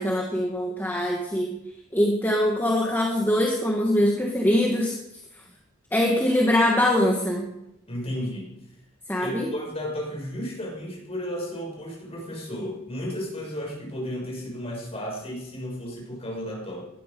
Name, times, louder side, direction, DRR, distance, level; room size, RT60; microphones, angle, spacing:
voice 1, 0.0-1.5 1.9-5.0 5.9-7.5 9.1-9.5, left 1 dB, 10° left, -1 dB, 1.9 m, -23 dB
voice 2, 7.9-8.5 9.2-16.9, equal, 30° left, -1 dB, 6.3 m, -33 dB
19.5 x 12.5 x 5.4 m, 0.86 s
head